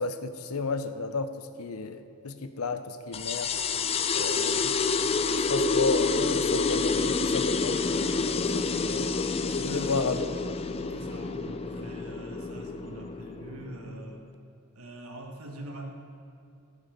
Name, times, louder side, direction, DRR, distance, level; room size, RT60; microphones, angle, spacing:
voice 1, 0.0-3.5 4.1-8.3 8.5-9.0 9.6-10.2, left 4 dB, 85° left, 10 dB, 0.7 m, -33 dB
sound 1, 3.1-14.2, left 4 dB, 30° left, 0.4 m, -28 dB
voice 2, 9.4-10.4 10.7-14.3 14.7-15.9, right 1 dB, 85° right, 2 dB, 1.6 m, -43 dB
15.5 x 7.0 x 5.2 m, 2.6 s
head